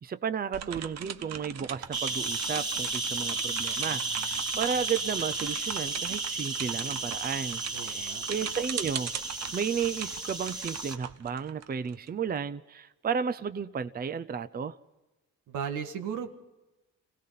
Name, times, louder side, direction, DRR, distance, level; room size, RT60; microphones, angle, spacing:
voice 1, 0.0-9.1 9.5-14.8, right 6 dB, 30° right, 0.6 m, -33 dB
sound 1, 0.5-12.1, right 8 dB, 60° right, 1.0 m, -40 dB
sound 2, 1.9-11.0, right 3 dB, 15° right, 3.0 m, -33 dB
voice 2, 7.7-8.2 15.5-16.3, right 7 dB, 85° right, 1.9 m, -35 dB
26.5 x 17.0 x 5.7 m
cardioid pair, 90°, 30 cm